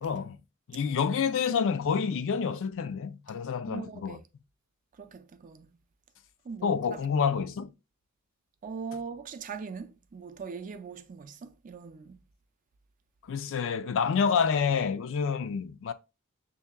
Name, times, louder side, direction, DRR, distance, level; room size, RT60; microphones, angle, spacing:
voice 1, 0.0-0.4 0.7-4.2 6.6-7.7 13.3-15.9, left 6 dB, 60° left, 0.4 m, -28 dB
voice 2, 3.7-4.2 5.0-5.7 6.5-7.0 8.6-12.2, right 5 dB, 40° right, 0.4 m, -41 dB
6.3 x 2.7 x 2.2 m
head